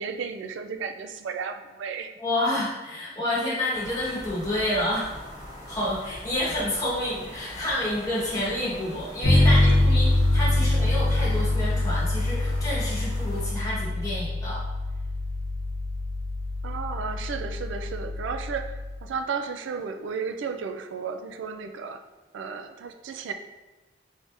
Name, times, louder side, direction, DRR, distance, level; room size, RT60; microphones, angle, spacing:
voice 1, 0.0-2.1 9.4-9.8 16.6-22.0 22.3-23.3, right 5 dB, 80° right, 7 dB, 0.3 m, -34 dB
voice 2, 2.2-5.1 5.7-10.1 10.3-14.6, left 1 dB, 20° left, -7 dB, 1.3 m, -29 dB
sound 1, 3.7-13.5, equal, 20° right, 1.4 m, -42 dB
Bass guitar, 9.2-19.0, left 1 dB, 80° left, 0.9 m, -24 dB
3.7 x 3.4 x 2.5 m, 1.2 s
head